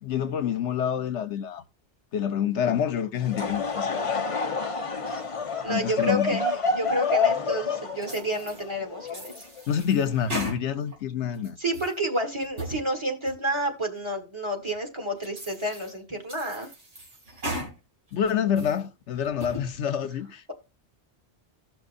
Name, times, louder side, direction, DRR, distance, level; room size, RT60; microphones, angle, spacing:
voice 1, 0.0-1.6 2.1-4.1 5.7-6.4 9.7-11.6 18.1-20.5, left 8 dB, 80° left, 1.1 m, -27 dB
Laughter / Crowd, 3.2-9.6, left 4 dB, 30° left, 0.8 m, -28 dB
voice 2, 5.6-9.4 11.6-16.7, right 1 dB, 25° right, 1.7 m, -30 dB
sound 1, 8.0-8.6 9.1-11.0 11.3-12.0 12.4-12.8 13.3-13.4 14.0-14.1 14.7-14.8 15.2-15.9 16.3-17.7 18.1-18.8 19.2-19.6, right 1 dB, 90° right, 3.1 m, -37 dB
16.0 x 6.1 x 2.5 m
omnidirectional pair, 1.2 m